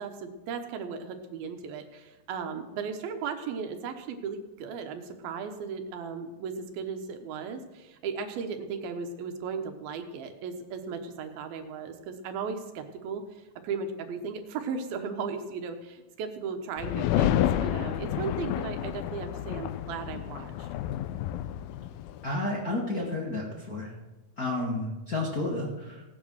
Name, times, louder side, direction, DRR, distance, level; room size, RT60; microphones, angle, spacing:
voice 1, 0.0-20.7, right 5 dB, 80° right, 6 dB, 3.0 m, -36 dB
sound 1, 16.8-22.2, left 12 dB, 80° left, 2.4 m, -30 dB
voice 2, 22.2-23.9 24.4-26.0, left 2 dB, 35° left, -4 dB, 1.7 m, -31 dB
16.5 x 9.5 x 6.3 m, 1.1 s
omnidirectional pair, 4.2 m